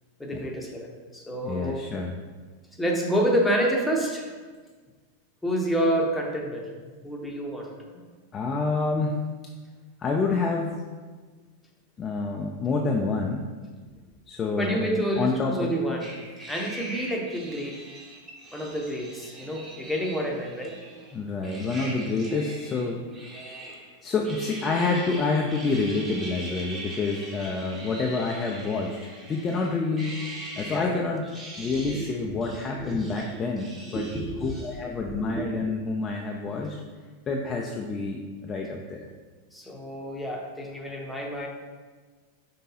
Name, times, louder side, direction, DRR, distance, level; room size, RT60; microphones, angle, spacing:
voice 1, 0.2-1.8 2.8-4.3 5.4-6.7 7.0-7.7 14.5-16.1 16.5-17.8 18.5-20.8 30.7-31.0 31.8-32.4 32.8-33.2 33.9-34.7 35.1-35.8 39.5-41.5, right 1 dB, 5° left, -1 dB, 0.8 m, -29 dB
voice 2, 1.4-2.2 7.9-8.1 8.3-9.3 10.0-10.9 12.0-13.5 14.3-14.9 15.2-15.7 21.1-23.0 24.0-30.3 30.6-31.3 31.6-34.1 34.4-36.8 37.3-39.1, left 3 dB, 25° left, 0 dB, 0.4 m, -28 dB
sound 1, 16.0-21.1 21.4-23.9 24.2-30.9 31.2-32.2 32.4-34.8, right 1 dB, 20° right, 1.0 m, -42 dB
5.3 x 3.6 x 2.7 m, 1.4 s
figure-of-eight pair, 90°, 0 cm